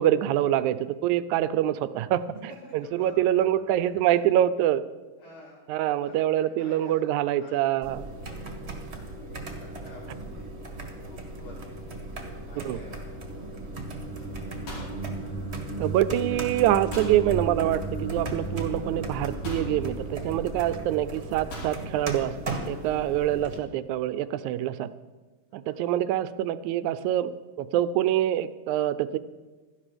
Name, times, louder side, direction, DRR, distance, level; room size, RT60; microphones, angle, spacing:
voice 1, 0.0-4.8 5.7-8.1 12.6-12.8 15.8-22.3 22.7-24.9 25.5-29.2, right 12 dB, 80° right, 13 dB, 1.9 m, -25 dB
voice 2, 2.5-4.2 5.2-5.6 6.0-8.5 9.3-10.5 11.1-11.8 12.2-13.1 21.4-21.6 25.7-25.8, left 1 dB, 65° left, -9 dB, 5.2 m, -50 dB
sound 1, 7.8-23.6, right 2 dB, 30° right, 1.3 m, -38 dB
sound 2, 12.8-21.9, right 3 dB, 15° left, 2.9 m, -36 dB
sound 3, 14.6-15.9 16.9-17.2 18.4-18.5 19.4-19.8 21.5-21.8, equal, 90° left, 6.6 m, -39 dB
17.0 x 13.0 x 5.1 m, 1.3 s
omnidirectional pair, 3.5 m